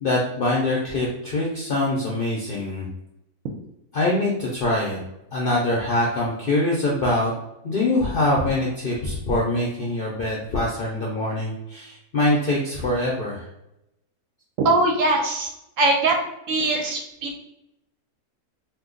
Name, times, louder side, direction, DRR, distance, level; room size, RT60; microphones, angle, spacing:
voice 1, 0.0-2.9 3.9-5.0 5.3-7.3 7.6-13.4, left 2 dB, 60° left, -4 dB, 0.5 m, -24 dB
voice 2, 14.6-15.5 15.8-16.1 16.5-17.4, right 2 dB, 70° right, 1 dB, 0.8 m, -21 dB
2.7 x 2.3 x 3.7 m, 0.86 s
omnidirectional pair, 1.6 m